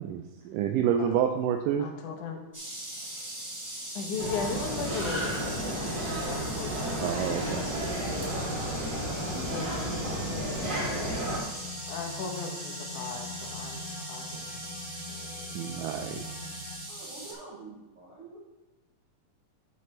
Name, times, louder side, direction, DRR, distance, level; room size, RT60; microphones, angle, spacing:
voice 1, 0.0-1.9 7.0-7.8 15.6-16.2, right 9 dB, 85° right, 4 dB, 2.2 m, -28 dB
voice 2, 1.8-2.4 4.0-6.0 6.2-7.1 8.4-8.7 9.4-11.4 11.9-13.8 14.1-14.6 15.1-15.3, left 5 dB, 75° left, 3 dB, 2.4 m, -38 dB
sound 1, 2.5-17.3, right 1 dB, 20° right, 0.8 m, -40 dB
sound 2, 4.1-16.7, left 2 dB, 90° left, 0.4 m, -43 dB
sound 3, 4.2-11.4, right 1 dB, 35° right, 2.3 m, -33 dB
voice 3, 16.9-18.4, right 3 dB, 55° right, -5 dB, 1.7 m, -47 dB
7.7 x 7.5 x 3.3 m, 1.1 s
omnidirectional pair, 3.8 m